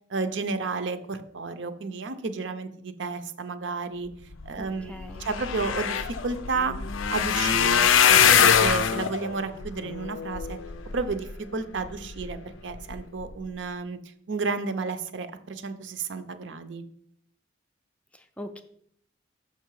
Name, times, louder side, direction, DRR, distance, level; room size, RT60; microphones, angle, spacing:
voice 1, 0.1-4.1 4.5-6.8 7.1-10.6 10.9-14.0 14.3-16.8, right 4 dB, 70° right, 10 dB, 0.6 m, -32 dB
sound 1, 4.6-4.7 4.9-11.3 11.9-12.3 12.7-12.9 13.2-13.3, left 8 dB, 90° left, 0.5 m, -23 dB
voice 2, 4.6-5.2 18.1-18.6, left 1 dB, 5° left, 8 dB, 0.4 m, -41 dB
6.2 x 5.8 x 4.7 m, 0.68 s
head